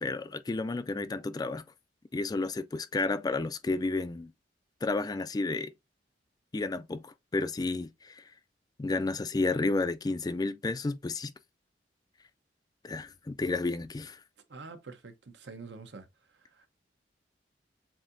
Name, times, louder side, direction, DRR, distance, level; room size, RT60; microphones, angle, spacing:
voice 1, 0.0-1.6 2.1-4.3 4.8-5.7 6.5-8.2 8.8-11.3 12.8-14.2, left 3 dB, 20° left, 0.3 m, -31 dB
voice 2, 14.5-16.1 16.6-16.7, right 4 dB, 75° right, 0.9 m, -46 dB
7.2 x 2.8 x 2.6 m
head